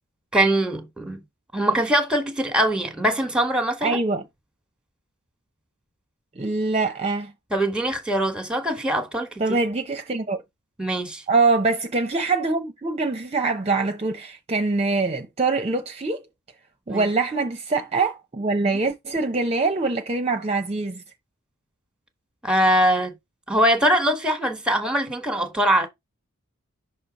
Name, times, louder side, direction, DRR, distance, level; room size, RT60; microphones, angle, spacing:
voice 1, 0.3-1.2 1.5-4.0 7.5-9.4 10.8-11.2 16.9-17.1 18.6-18.7 22.4-23.1 23.5-25.9, right 1 dB, 5° right, 1.4 m, -22 dB
voice 2, 3.8-4.2 6.4-7.3 9.4-10.4 11.3-16.2 16.9-21.0, right 3 dB, 30° right, 0.7 m, -24 dB
6.2 x 3.2 x 5.2 m
head